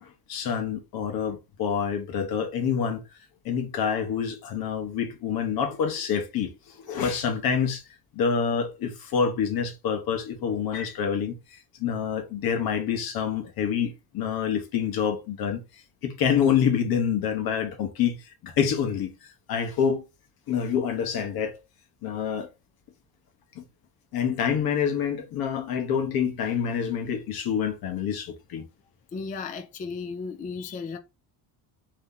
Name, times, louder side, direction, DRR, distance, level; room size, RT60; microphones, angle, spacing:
voice 1, 0.0-3.0 3.4-7.8 8.1-15.6 16.0-19.1 19.5-20.0 20.5-21.6 22.0-22.5 23.5-23.6 24.1-28.6, left 7 dB, 60° left, 1.2 m, -27 dB
voice 2, 29.1-31.0, left 4 dB, 20° left, 0.4 m, -34 dB
4.2 x 3.2 x 3.8 m
cardioid pair, 165°, 41 cm